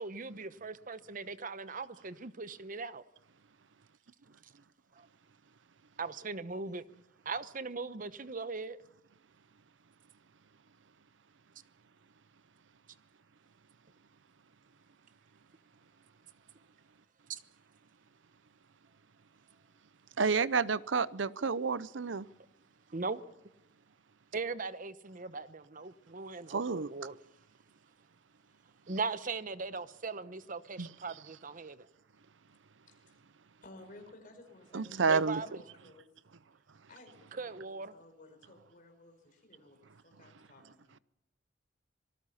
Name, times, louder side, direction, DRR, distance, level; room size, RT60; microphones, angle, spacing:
voice 1, 0.0-3.0 6.0-6.9 7.2-8.8 17.3-17.4 22.9-23.2 24.3-27.2 28.9-31.9 35.1-35.6 37.3-37.9, right 4 dB, 45° right, 0.9 m, -39 dB
voice 2, 20.2-22.3 26.5-26.9 30.8-30.9 34.7-35.4, right 5 dB, 85° right, 0.7 m, -29 dB
voice 3, 32.9-33.2 33.6-36.1 36.9-39.8 40.0-41.0, left 2 dB, 45° left, 5.2 m, -56 dB
26.0 x 19.0 x 5.7 m
head